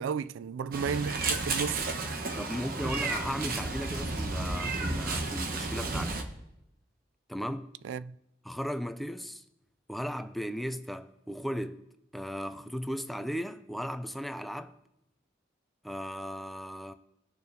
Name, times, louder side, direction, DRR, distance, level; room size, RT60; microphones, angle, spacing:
voice 1, 0.0-1.8 7.8-8.1, right 6 dB, 85° right, 0.3 m, -33 dB
Meow, 0.7-6.2, right 3 dB, 50° right, 1.0 m, -32 dB
voice 2, 2.4-6.2 7.3-7.7 8.4-9.4 9.9-11.8 12.1-14.8 15.8-16.9, equal, ahead, 0.4 m, -36 dB
19.0 x 6.8 x 2.7 m
head